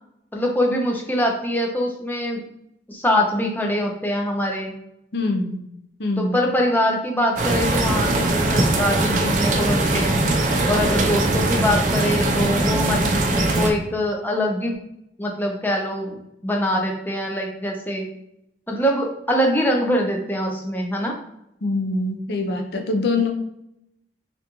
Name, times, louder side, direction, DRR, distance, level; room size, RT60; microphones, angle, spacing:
voice 1, 0.3-2.4 2.9-4.7 6.2-10.2 10.7-14.7 15.2-18.1 18.7-21.2, equal, 10° left, 0 dB, 0.5 m, -23 dB
voice 2, 5.1-5.6 6.0-6.4 21.6-23.3, left 2 dB, 65° left, 3 dB, 0.5 m, -24 dB
sound 1, 7.4-13.7, right 2 dB, 45° right, 0.4 m, -21 dB
3.4 x 2.6 x 2.9 m, 0.81 s
head